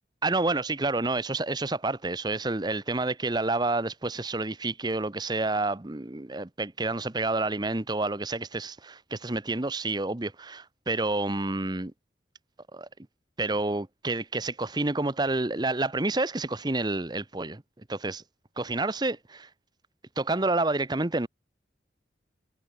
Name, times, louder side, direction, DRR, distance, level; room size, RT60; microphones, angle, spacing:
voice 1, 0.2-11.9 12.7-12.9 13.4-17.6 17.9-18.2 18.6-19.5 20.2-21.3, right 2 dB, 25° right, 0.9 m, -29 dB
head